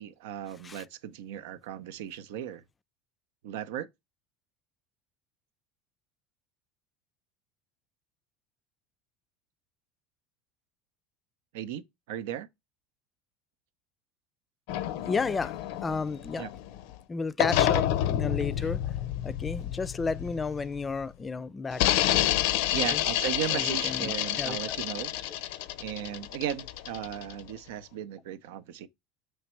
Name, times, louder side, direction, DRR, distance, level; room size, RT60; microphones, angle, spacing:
voice 1, 0.0-2.6 3.4-3.9 11.5-12.5 16.4-16.5 22.7-25.5 25.8-28.9, right 11 dB, 85° right, 0.7 m, -36 dB
sound 1, 14.7-17.0 17.4-21.0 21.7-27.5, left 13 dB, 70° left, 0.5 m, -29 dB
voice 2, 15.0-16.5 17.1-18.8 19.2-21.9 22.7-23.0 23.5-24.8, left 4 dB, 20° left, 0.4 m, -32 dB
7.2 x 3.2 x 4.5 m
supercardioid pair, 140°, 0 cm